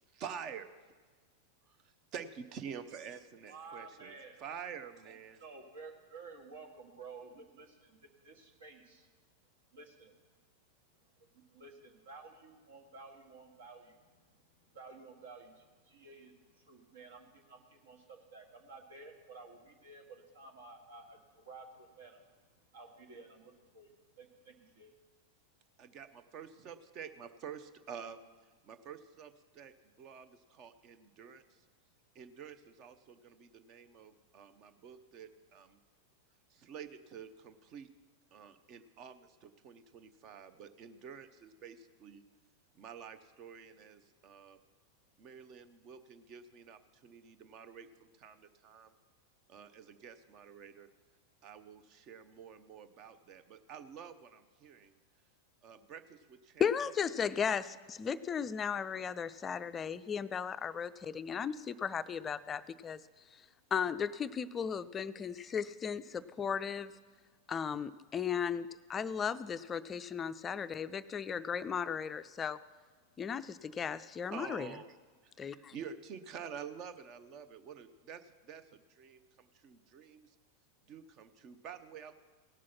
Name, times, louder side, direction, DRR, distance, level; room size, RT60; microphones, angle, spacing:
voice 1, 0.1-0.8 1.7-5.4 25.8-31.7 32.1-35.8 36.5-37.9 38.3-42.2 42.7-44.6 45.2-48.9 49.5-50.9 51.4-54.9 55.6-56.7 74.3-75.0 75.2-80.3 80.9-82.1, right 7 dB, 35° right, 11 dB, 0.7 m, -49 dB
voice 2, 3.5-4.4 5.4-9.1 9.7-10.1 11.2-14.2 14.7-22.2 22.7-24.9, right 4 dB, 65° right, 4 dB, 1.6 m, -53 dB
voice 3, 56.6-63.0 63.7-66.9 67.5-72.6 73.2-74.7 75.4-75.7, left 7 dB, 20° left, 14 dB, 0.4 m, -36 dB
17.5 x 6.2 x 5.8 m, 1.4 s
figure-of-eight pair, 90°, 0 cm